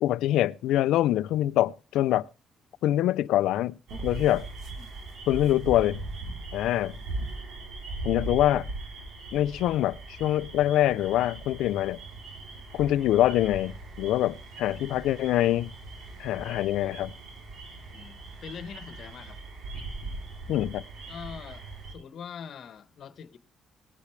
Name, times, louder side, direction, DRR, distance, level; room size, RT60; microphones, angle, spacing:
voice 1, 0.0-2.3 2.8-3.8 4.0-4.5 5.3-6.0 6.5-7.0 8.0-8.7 9.3-12.0 12.7-15.7 16.2-17.1 20.5-20.8, left 13 dB, 90° left, 0.5 m, -24 dB
sound 1, 3.9-21.9, right 3 dB, 70° right, 3.6 m, -40 dB
voice 2, 17.9-19.4 21.1-23.4, left 7 dB, 65° left, 1.2 m, -43 dB
20.0 x 8.2 x 3.3 m
cardioid pair, 90°, 0 cm